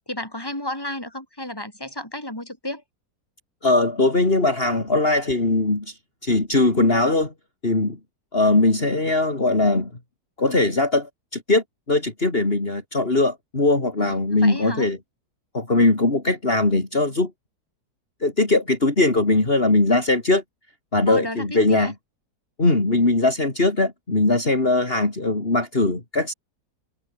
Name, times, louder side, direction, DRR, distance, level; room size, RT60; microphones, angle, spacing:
voice 1, 0.1-2.8 14.0-14.1 14.4-14.9 21.1-21.9, left 1 dB, 15° left, 5.7 m, -32 dB
voice 2, 3.6-6.0 6.2-7.3 7.6-8.0 8.3-9.9 10.4-15.0 15.5-17.3 18.2-20.4 20.9-21.9 22.6-26.3, left 2 dB, 35° left, 3.9 m, -20 dB
omnidirectional pair, 1.7 m